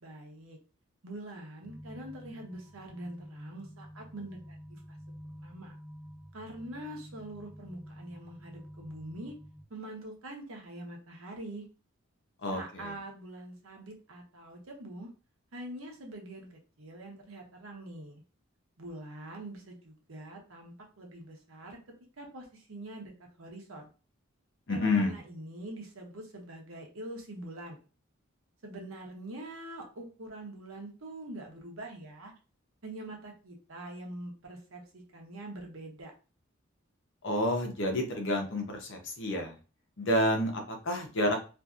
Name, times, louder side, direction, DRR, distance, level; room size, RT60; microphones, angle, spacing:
voice 1, 0.0-0.6 1.0-4.6 5.4-5.7 6.3-9.3 9.7-11.6 12.5-15.1 15.5-18.2 18.8-21.8 22.2-23.1 23.4-23.9 24.7-27.8 28.6-32.3 32.8-36.1, right 1 dB, 80° right, 1 dB, 0.9 m, -44 dB
sound 1, 1.6-9.6, equal, 5° right, 0.6 m, -49 dB
voice 2, 12.4-12.9 24.7-25.2 37.2-39.6 40.0-41.4, left 1 dB, 60° left, 3 dB, 0.7 m, -29 dB
2.7 x 2.6 x 2.4 m, 0.34 s
head